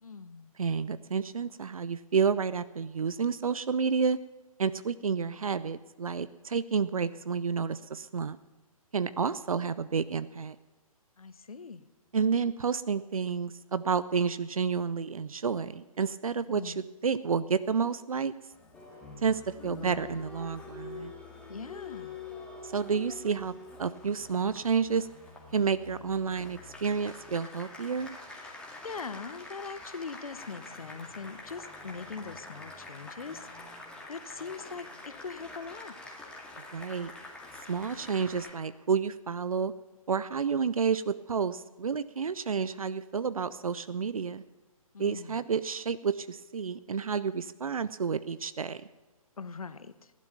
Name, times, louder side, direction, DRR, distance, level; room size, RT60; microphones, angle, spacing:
voice 1, 0.0-0.5 11.2-11.9 16.5-16.8 19.6-20.2 21.5-22.2 28.8-33.5 34.1-36.0 44.9-45.4 49.4-50.1, left 5 dB, 70° left, 14 dB, 1.0 m, -41 dB
voice 2, 0.6-4.2 4.6-8.4 8.9-10.6 12.1-16.7 17.0-18.3 19.2-21.1 22.6-23.5 23.8-25.1 25.5-28.1 36.7-37.1 37.7-39.7 40.1-44.4 45.0-48.8, right 6 dB, 70° right, 15 dB, 0.6 m, -30 dB
Applause, 18.5-38.5, left 3 dB, 5° left, 2.0 m, -46 dB
15.5 x 11.5 x 7.1 m, 1.2 s
figure-of-eight pair, 135°, 19 cm